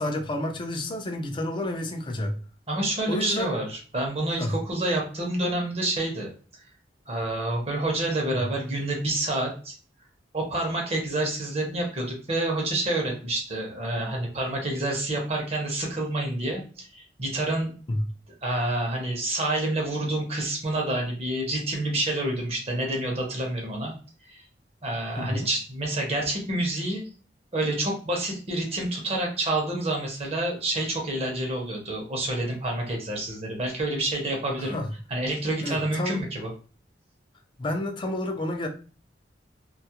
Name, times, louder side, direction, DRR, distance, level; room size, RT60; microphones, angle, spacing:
voice 1, 0.0-2.4 3.1-3.5 4.4-4.5 8.3-8.4 17.9-18.0 25.2-25.5 34.6-34.9 35.6-36.2 37.6-38.7, left 1 dB, 30° left, 3 dB, 0.4 m, -30 dB
voice 2, 2.7-6.3 7.1-9.7 10.3-17.7 18.4-23.9 24.2-24.4 24.8-27.0 27.5-34.8 35.1-36.5, right 1 dB, 35° right, 0 dB, 0.7 m, -28 dB
2.3 x 2.0 x 2.7 m, 0.38 s
head